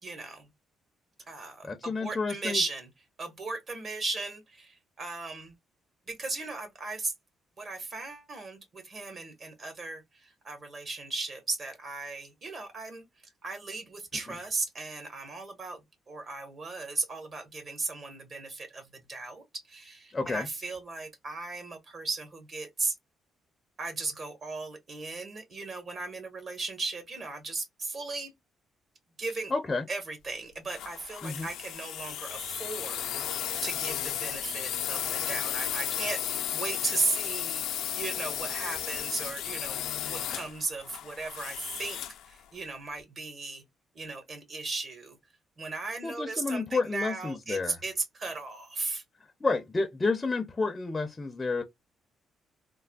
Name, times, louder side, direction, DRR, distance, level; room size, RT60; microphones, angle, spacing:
voice 1, 0.0-0.5 1.3-2.9 3.2-5.5 6.1-7.1 7.6-13.1 13.4-22.9 23.8-28.3 29.2-29.5 29.9-42.0 42.2-43.6 43.9-45.2 45.6-49.0, right 3 dB, 45° right, 1.2 m, -36 dB
voice 2, 1.6-2.6 14.3-14.4 20.1-20.5 29.5-29.9 31.2-31.5 46.0-47.8 49.4-51.6, left 3 dB, 25° left, 0.5 m, -30 dB
sound 1, 30.7-42.3, left 10 dB, 85° left, 0.4 m, -34 dB
3.3 x 2.1 x 2.3 m
cardioid pair, 90°, 0 cm